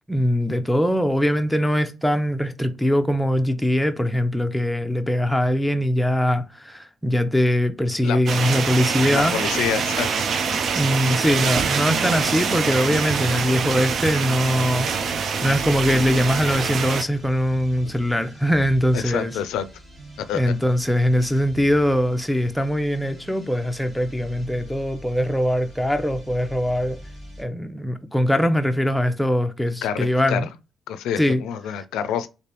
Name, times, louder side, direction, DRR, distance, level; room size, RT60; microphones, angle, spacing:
voice 1, 0.1-9.4 10.7-19.4 20.3-27.0 27.4-30.5 31.2-31.4, equal, 5° left, 0.5 m, -22 dB
sound 1, 8.3-17.0, right 6 dB, 60° right, 0.4 m, -24 dB
voice 2, 9.1-10.1 18.9-19.7 20.3-20.5 29.8-30.5 30.9-32.3, left 9 dB, 85° left, 0.4 m, -27 dB
sound 2, 12.1-27.5, right 1 dB, 35° right, 1.5 m, -43 dB
3.3 x 2.6 x 2.9 m
cardioid pair, 90°, 0 cm